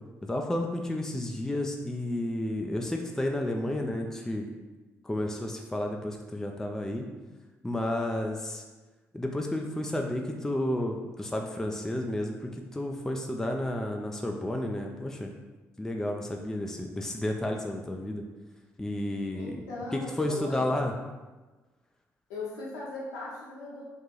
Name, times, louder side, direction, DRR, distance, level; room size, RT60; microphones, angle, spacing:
voice 1, 0.2-4.5 5.0-7.0 7.6-8.6 9.1-15.3 15.8-18.2 18.8-19.6 20.2-20.9, left 1 dB, 5° left, 2 dB, 0.4 m, -31 dB
voice 2, 19.3-20.7 22.3-23.8, left 2 dB, 70° left, -5 dB, 0.9 m, -38 dB
2.8 x 2.6 x 3.8 m, 1.2 s
figure-of-eight pair, 45°, 8 cm